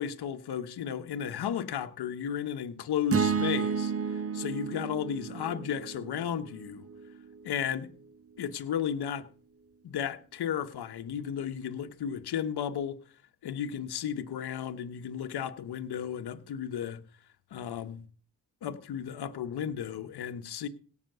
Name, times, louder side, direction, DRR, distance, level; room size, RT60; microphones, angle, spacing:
voice 1, 0.0-3.9 4.3-6.9 7.4-7.9 8.4-9.3 9.8-13.0 13.4-17.0 17.5-18.0 18.6-20.7, left 8 dB, 65° left, 1.3 m, -34 dB
sound 1, 3.1-7.4, right 6 dB, 35° right, 1.2 m, -32 dB
17.0 x 6.0 x 6.8 m
cardioid pair, 70°, 41 cm